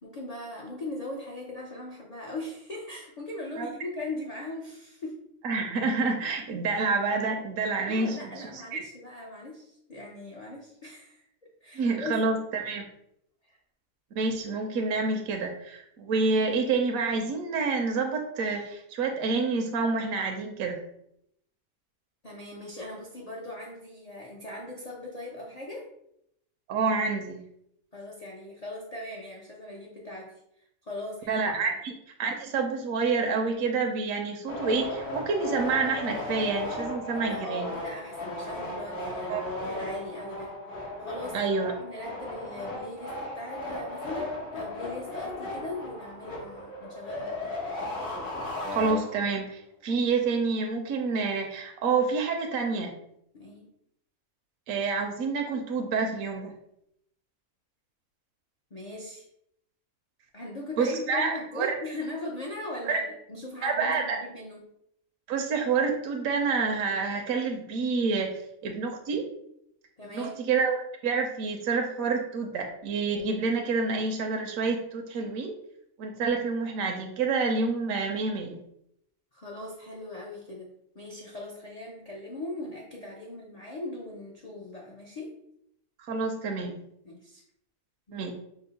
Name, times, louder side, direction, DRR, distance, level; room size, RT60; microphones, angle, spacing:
voice 1, 0.0-5.2 7.6-11.2 11.6-12.1 13.5-13.6 22.2-25.9 27.9-31.8 37.1-41.5 41.8-47.6 53.3-53.7 58.7-59.3 60.3-64.7 70.0-70.4 79.3-85.3 87.0-87.4 88.1-88.3, left 2 dB, 60° left, -3 dB, 0.4 m, -40 dB
voice 2, 5.4-8.3 8.7-8.8 11.7-12.8 14.2-20.8 26.7-27.4 31.3-31.9 32.2-37.7 39.3-39.4 41.3-41.7 48.7-52.9 54.7-56.5 60.8-61.7 62.8-63.0 63.6-64.2 65.3-68.3 68.6-69.3 70.0-75.5 76.0-78.6 86.1-86.8 88.1-88.3, right 4 dB, 75° right, 2 dB, 1.0 m, -28 dB
sound 1, 34.5-49.5, left 2 dB, 80° left, 1.6 m, -36 dB
5.1 x 2.0 x 4.0 m, 0.75 s
omnidirectional pair, 1.6 m